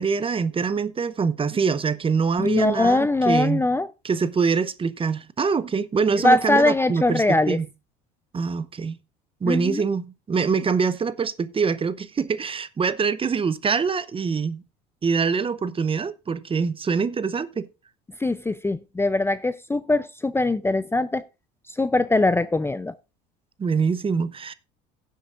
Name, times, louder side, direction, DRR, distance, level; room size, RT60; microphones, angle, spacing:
voice 1, 0.0-3.6 4.0-7.7 8.3-9.0 9.4-14.6 15.0-17.7 23.6-24.5, right 5 dB, 25° right, 0.8 m, -24 dB
voice 2, 2.4-3.9 6.2-7.6 9.5-9.8 18.2-21.2 21.8-22.9, left 2 dB, 10° left, 0.5 m, -21 dB
16.0 x 7.6 x 2.5 m
supercardioid pair, 80°, 21 cm